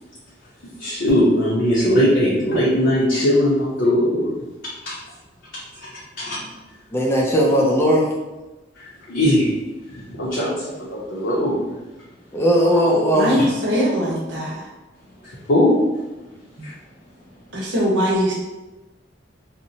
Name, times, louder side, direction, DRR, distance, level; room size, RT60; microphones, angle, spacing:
voice 1, 0.8-4.3 4.8-4.9 5.8-5.9 6.2-6.4 8.8-9.5 9.9-11.6 13.4-13.5 15.2-15.8 16.6-16.7, equal, 65° left, -8 dB, 0.6 m, -20 dB
voice 2, 6.9-8.1 12.3-13.3, equal, 15° left, -3 dB, 0.4 m, -17 dB
voice 3, 13.1-14.7 16.6-16.7 17.5-18.3, equal, 70° right, -4 dB, 0.8 m, -21 dB
2.8 x 2.1 x 2.6 m, 1.1 s
head